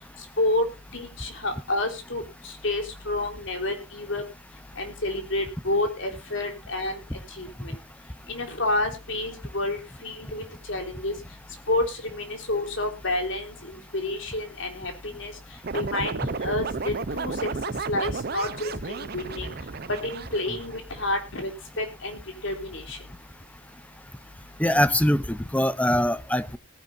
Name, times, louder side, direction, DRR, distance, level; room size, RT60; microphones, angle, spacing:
voice 1, 0.9-4.2 4.8-7.0 7.4-7.7 8.3-11.1 11.7-15.3 15.7-17.5 17.9-19.5 20.0-21.5 21.8-23.0, left 2 dB, 60° left, 3.6 m, -29 dB
sound 1, 15.6-21.1, right 4 dB, 50° right, 0.6 m, -33 dB
voice 2, 24.6-26.6, equal, 5° left, 0.6 m, -23 dB
19.0 x 10.5 x 2.6 m
head